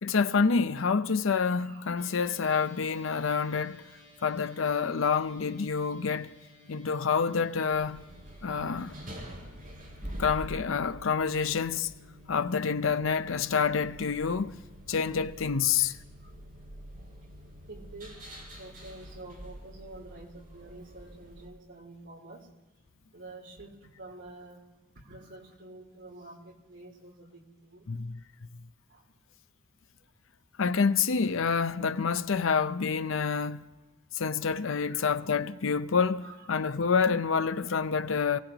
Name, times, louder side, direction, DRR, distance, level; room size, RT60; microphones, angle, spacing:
voice 1, 0.0-3.8 4.2-6.3 6.7-8.0 8.4-8.9 10.2-11.9 12.3-14.6 14.9-16.0 27.9-28.2 30.6-33.6 34.1-38.4, left 5 dB, 70° left, 0.6 m, -27 dB
voice 2, 1.5-2.0 6.6-6.8 7.7-7.8 8.9-9.1 12.6-12.7 15.6-15.8 16.2-16.3 17.7-18.3 18.6-22.5 23.1-24.6 24.9-27.9 28.9-29.0 34.3-34.4 34.8-35.8 36.2-36.5, right 2 dB, 60° right, 3.4 m, -49 dB
sound 1, 2.0-19.4, left 2 dB, 25° right, 6.3 m, -57 dB
sound 2, 7.7-21.5, right 1 dB, 40° right, 4.8 m, -46 dB
27.5 x 18.0 x 3.0 m
head